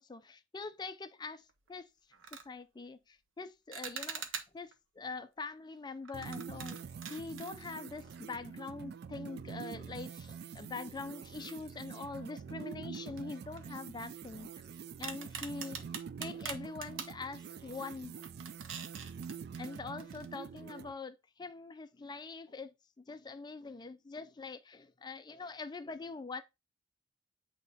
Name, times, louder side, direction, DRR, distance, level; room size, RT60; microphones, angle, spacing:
voice 1, 0.0-1.4 1.7-1.9 2.5-6.8 7.1-14.5 15.0-18.3 19.6-26.4, left 4 dB, 20° left, 0.4 m, -44 dB
sound 1, 1.5-1.7 2.1-2.5 3.7-4.7 6.0-8.4 8.7-8.8 9.6-9.7 11.5-12.2 12.5-12.6 13.1-14.6 15.0-17.2 17.7-17.9 18.2-20.3, right 7 dB, 75° right, 0.9 m, -45 dB
sound 2, 6.1-20.9, right 6 dB, 55° right, 0.3 m, -46 dB
8.4 x 3.0 x 4.1 m
head